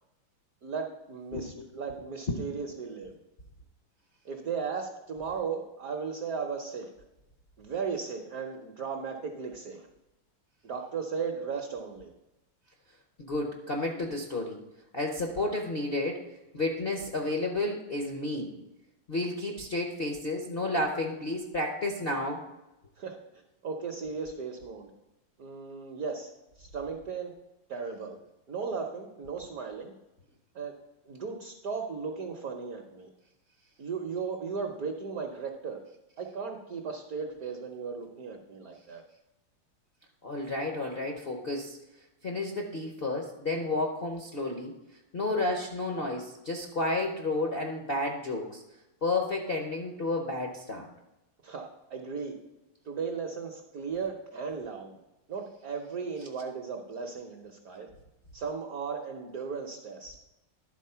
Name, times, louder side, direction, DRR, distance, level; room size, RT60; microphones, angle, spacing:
voice 1, 0.6-3.1 4.2-6.9 7.6-9.9 10.6-12.1 23.0-23.1 23.6-24.9 25.4-26.3 26.6-27.3 27.7-28.2 28.5-29.9 30.5-30.7 31.1-33.1 33.8-35.8 36.2-39.0 51.4-52.3 52.9-55.0 55.3-57.9 58.3-60.1, right 5 dB, 60° right, 3 dB, 1.0 m, -36 dB
voice 2, 1.3-1.7 2.3-2.4 13.2-14.6 14.9-16.2 16.5-18.5 19.1-22.4 40.2-41.8 42.2-44.7 45.1-48.6 49.0-50.9, left 2 dB, 60° left, 1 dB, 0.6 m, -31 dB
11.0 x 4.1 x 5.5 m, 0.95 s
omnidirectional pair, 2.3 m